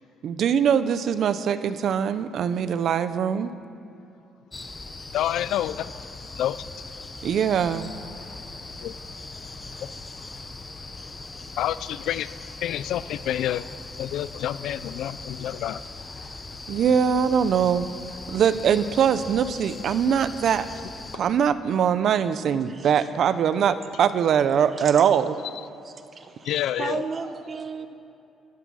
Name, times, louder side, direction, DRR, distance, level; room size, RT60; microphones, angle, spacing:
voice 1, 0.2-3.5 7.2-7.9 16.7-17.9 18.3-20.7 21.1-25.3, right 8 dB, 50° right, 13 dB, 0.6 m, -22 dB
sound 1, 4.5-21.2, left 3 dB, 15° left, 0.8 m, -40 dB
voice 2, 5.1-5.9 6.3-6.6 8.8-9.0 11.6-12.3 12.6-13.7 14.0-15.8 21.1-21.2 26.4-27.0, left 12 dB, 65° left, 16 dB, 0.4 m, -28 dB
voice 3, 22.7-23.1 24.7-25.2 25.8-27.9, right 5 dB, 25° right, 8 dB, 0.9 m, -35 dB
14.0 x 12.0 x 6.3 m, 2.8 s
cardioid pair, 165°, 0 cm